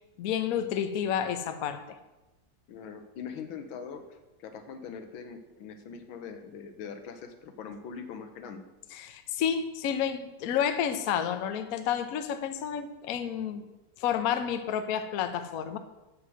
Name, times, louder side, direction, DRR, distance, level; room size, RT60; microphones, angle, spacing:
voice 1, 0.2-2.0 8.9-13.7 14.0-15.8, left 8 dB, 60° left, 9 dB, 1.0 m, -30 dB
voice 2, 2.7-8.7, left 6 dB, 85° left, 8 dB, 1.7 m, -42 dB
7.9 x 6.3 x 6.2 m, 1.0 s
omnidirectional pair, 2.1 m